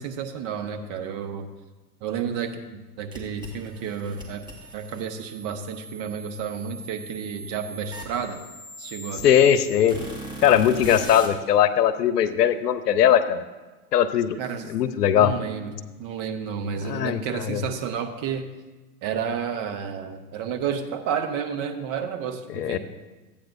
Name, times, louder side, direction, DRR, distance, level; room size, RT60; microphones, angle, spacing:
voice 1, 0.0-1.5 2.0-4.4 4.7-8.4 8.8-9.4 14.4-14.7 15.2-15.7 16.0-18.5 19.0-22.8, right 7 dB, 40° right, 7 dB, 1.0 m, -31 dB
sound 1, 3.1-11.3, right 1 dB, 10° right, 1.6 m, -40 dB
voice 2, 9.2-10.0 10.4-13.4 13.9-14.4 14.7-15.3 16.8-17.6 22.6-22.8, left 9 dB, 80° left, 13 dB, 0.8 m, -20 dB
13.0 x 8.7 x 2.6 m, 1.2 s
hypercardioid pair, 105°, 47 cm